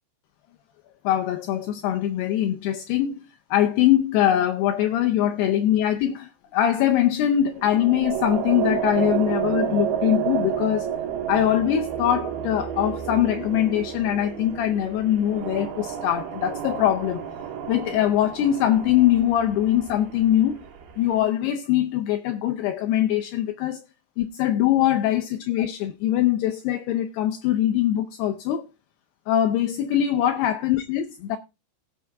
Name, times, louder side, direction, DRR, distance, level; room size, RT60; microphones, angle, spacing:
voice 1, 1.0-3.2 3.5-10.9 11.3-17.2 17.7-20.6 21.0-23.9 24.2-28.7 29.3-31.4, left 11 dB, 85° left, 2.3 m, -22 dB
sound 1, 7.6-21.2, right 9 dB, 70° right, 2.9 m, -31 dB
16.5 x 5.7 x 3.4 m
omnidirectional pair, 5.5 m